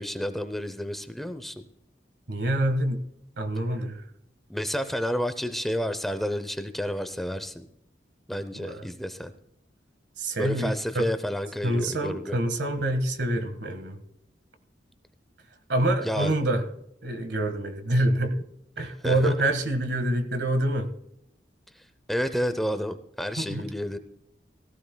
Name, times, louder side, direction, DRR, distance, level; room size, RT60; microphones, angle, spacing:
voice 1, 0.0-1.6 4.5-7.6 8.3-9.3 10.4-12.4 16.0-16.3 19.0-19.3 22.1-24.0, equal, ahead, 11 dB, 0.6 m, -30 dB
voice 2, 2.3-3.0 3.4-4.0 8.5-8.9 10.2-11.1 11.6-14.0 15.7-16.6 17.0-18.4 18.8-20.9 23.4-23.7, right 1 dB, 70° right, 9 dB, 1.5 m, -26 dB
17.0 x 15.0 x 2.2 m, 0.77 s
head